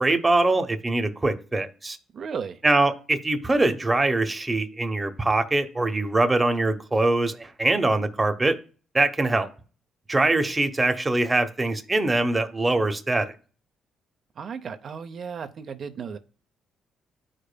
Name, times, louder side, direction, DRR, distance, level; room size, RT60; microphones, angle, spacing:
voice 1, 0.0-2.0 2.6-8.6 8.9-9.5 10.1-13.3, right 2 dB, 20° right, 0.8 m, -23 dB
voice 2, 2.1-2.6 14.4-16.2, right 6 dB, 55° right, 0.6 m, -34 dB
12.5 x 5.0 x 2.2 m
cardioid pair, 90°, 0 cm